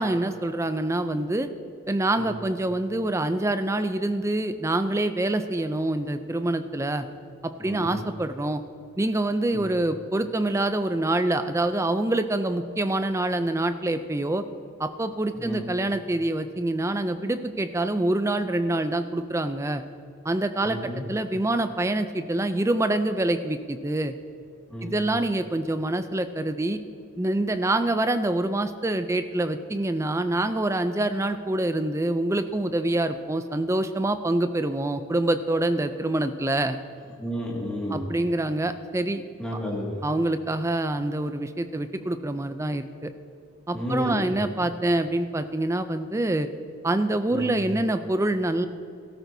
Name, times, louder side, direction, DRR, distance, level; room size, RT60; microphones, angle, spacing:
voice 1, 0.0-1.5 1.9-7.1 7.4-8.6 9.0-14.4 14.8-19.8 20.2-24.1 24.8-26.8 27.2-36.8 37.9-39.2 40.0-43.1 43.7-46.5 46.8-48.7, right 1 dB, 15° right, 10 dB, 0.4 m, -26 dB
voice 2, 7.6-8.0 9.5-9.7 15.4-15.6 20.6-21.0 24.7-24.9 37.2-38.1 39.4-39.9 43.7-44.2 47.3-47.5, equal, 5° left, -5 dB, 2.0 m, -32 dB
17.0 x 13.0 x 2.7 m, 2.4 s
head